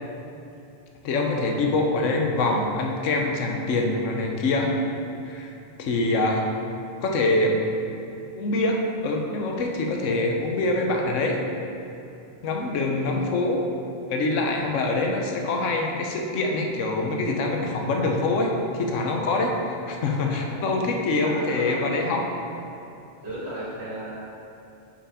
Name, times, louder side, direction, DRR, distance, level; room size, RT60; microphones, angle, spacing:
voice 1, 1.0-4.8 5.2-5.5 5.8-6.4 7.0-7.6 8.4-11.4 12.4-13.6 14.1-22.2, left 2 dB, 80° left, 1 dB, 1.1 m, -24 dB
voice 2, 12.8-13.3 14.6-14.8 20.4-20.6 21.2-22.0 22.5-22.6 23.2-24.2, right 1 dB, 55° right, -8 dB, 1.8 m, -36 dB
5.9 x 4.9 x 4.8 m, 2.7 s
omnidirectional pair, 1.3 m